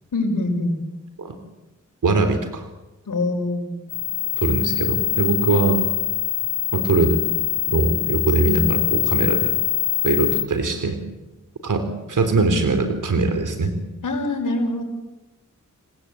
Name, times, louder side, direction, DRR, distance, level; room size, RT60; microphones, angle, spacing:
voice 1, 0.1-0.8 3.1-3.7 14.0-14.8, left 2 dB, 85° left, 3 dB, 6.0 m, -24 dB
voice 2, 2.0-2.6 4.4-5.8 6.7-7.2 7.7-9.5 10.0-11.0 11.6-13.7, right 3 dB, 80° right, 6 dB, 3.4 m, -21 dB
sound 1, 3.9-10.4, left 12 dB, 25° left, 7.5 m, -23 dB
29.5 x 17.5 x 8.7 m, 1.0 s
cardioid pair, 50°, 31 cm